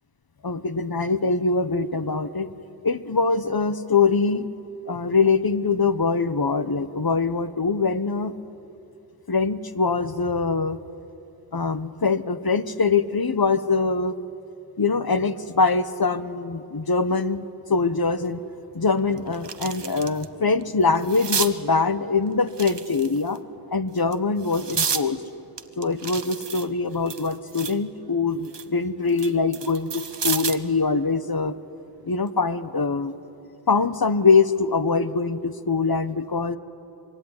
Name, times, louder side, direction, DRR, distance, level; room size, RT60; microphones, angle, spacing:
voice 1, 0.4-2.5 2.8-4.5 4.9-8.3 9.3-10.8 11.5-14.1 14.8-18.4 18.7-23.4 23.7-25.2 25.8-31.5 32.0-33.1 33.7-36.6, left 4 dB, 60° left, 12 dB, 1.1 m, -23 dB
sound 1, 18.2-18.3 18.8-20.3 20.6-21.5 22.5-23.4 24.0-25.1 25.6-27.8 28.2-30.7 32.1-32.3, right 6 dB, 80° right, 1.1 m, -31 dB
25.5 x 23.0 x 9.7 m, 2.8 s
wide cardioid pair, 55°, 41 cm